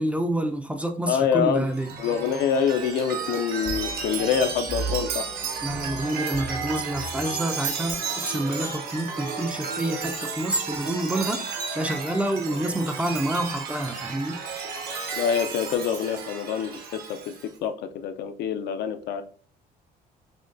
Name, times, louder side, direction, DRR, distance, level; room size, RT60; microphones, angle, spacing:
voice 1, 0.0-1.9 5.6-14.6, right 1 dB, 5° right, 0.4 m, -28 dB
voice 2, 1.1-1.7 2.0-5.3 15.2-17.3 17.6-19.2, left 7 dB, 75° left, 0.5 m, -26 dB
Chime, 1.6-17.5, right 5 dB, 65° right, 0.9 m, -32 dB
6.2 x 2.2 x 2.5 m
cardioid pair, 110°, 17 cm